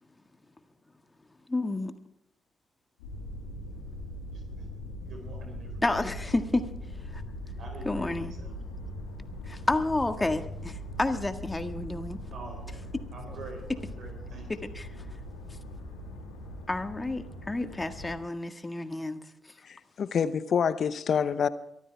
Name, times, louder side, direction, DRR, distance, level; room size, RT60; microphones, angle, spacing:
voice 1, 1.5-1.9 5.8-6.7 7.0-7.2 7.8-8.3 9.4-12.2 14.5-15.0 15.5-15.6 16.7-19.6, left 2 dB, 20° left, 1.7 m, -30 dB
sound 1, 3.0-18.2, left 1 dB, 85° left, 4.3 m, -41 dB
voice 2, 4.3-4.6 5.0-5.9 7.6-8.6 12.3-14.7, right 2 dB, 60° right, 4.7 m, -46 dB
voice 3, 19.6-21.5, left 7 dB, 55° left, 0.9 m, -27 dB
23.5 x 13.5 x 3.5 m
hypercardioid pair, 45°, 0 cm